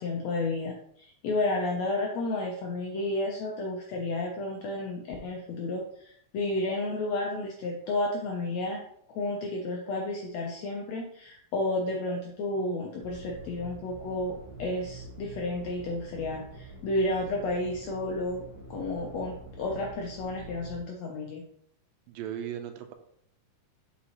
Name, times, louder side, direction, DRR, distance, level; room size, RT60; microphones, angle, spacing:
voice 1, 0.0-8.8 9.1-18.4 18.7-21.4, left 2 dB, 75° left, 0 dB, 1.6 m, -32 dB
sound 1, 13.0-20.8, right 2 dB, 35° right, 1.7 m, -46 dB
voice 2, 22.1-22.9, right 9 dB, 90° right, 6 dB, 2.5 m, -37 dB
6.6 x 5.2 x 3.0 m, 0.66 s
omnidirectional pair, 3.9 m